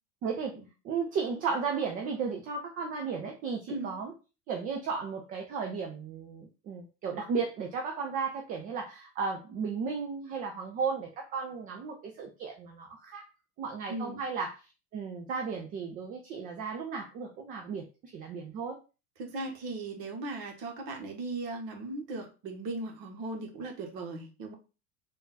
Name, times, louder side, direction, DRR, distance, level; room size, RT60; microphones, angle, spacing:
voice 1, 0.2-0.6 0.8-4.1 4.5-13.3 13.6-14.6 14.9-17.8 18.1-18.8, right 5 dB, 20° right, 2 dB, 0.3 m, -34 dB
voice 2, 13.9-14.2 19.2-24.5, right 2 dB, 45° right, 3 dB, 1.3 m, -38 dB
3.7 x 2.6 x 3.8 m, 0.32 s
figure-of-eight pair, 80°, 50 cm